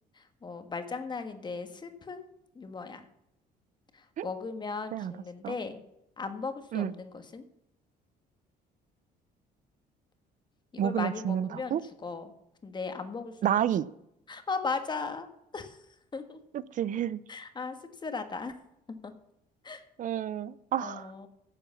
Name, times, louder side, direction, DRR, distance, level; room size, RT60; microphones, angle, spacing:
voice 1, 0.2-2.3 2.5-3.1 3.9-5.8 6.2-7.4 10.7-11.8 12.0-12.3 12.6-13.3 14.3-15.3 15.5-15.8 16.1-16.4 17.3-17.7 18.0-18.5 19.0-19.1 19.6-19.8 20.8-21.3, left 4 dB, 25° left, 8 dB, 1.5 m, -37 dB
voice 2, 10.8-11.8 13.4-13.9 16.7-17.2 20.0-21.1, right 10 dB, 50° right, 18 dB, 0.6 m, -29 dB
10.5 x 6.9 x 7.2 m, 0.80 s
cardioid pair, 110°, 17 cm